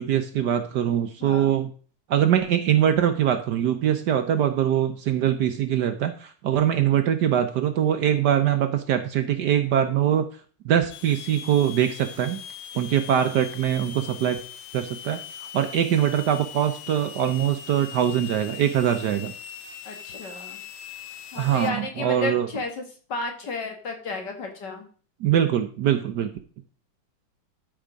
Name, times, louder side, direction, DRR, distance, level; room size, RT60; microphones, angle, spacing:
voice 1, 0.0-1.7 2.1-10.3 10.6-12.4 12.7-14.4 14.7-19.3 21.4-22.5 25.2-26.3, right 10 dB, 65° right, 8 dB, 1.1 m, -23 dB
voice 2, 1.2-1.5 19.9-20.6 21.3-22.8 23.1-24.9, left 3 dB, 55° left, 3 dB, 2.3 m, -32 dB
sound 1, 10.9-21.7, left 9 dB, 75° left, 1.6 m, -41 dB
12.5 x 4.6 x 5.1 m, 0.41 s
omnidirectional pair, 2.2 m